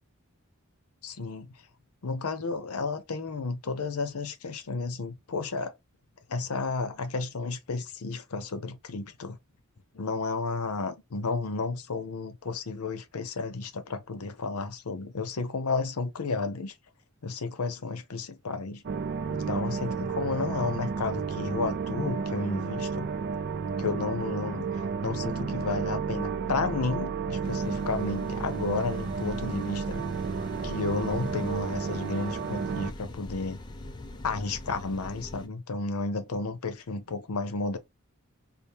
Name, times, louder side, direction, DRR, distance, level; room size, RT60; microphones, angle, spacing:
voice 1, 1.0-1.5 2.0-5.7 6.3-9.4 9.9-16.7 17.2-18.8 19.3-23.1 23.8-30.0 30.6-33.6 34.2-37.8, left 3 dB, 90° left, 0.7 m, -32 dB
sound 1, 18.8-32.9, right 5 dB, 50° right, 0.3 m, -32 dB
sound 2, 27.4-35.5, left 2 dB, 20° left, 0.4 m, -43 dB
4.2 x 2.1 x 3.4 m
head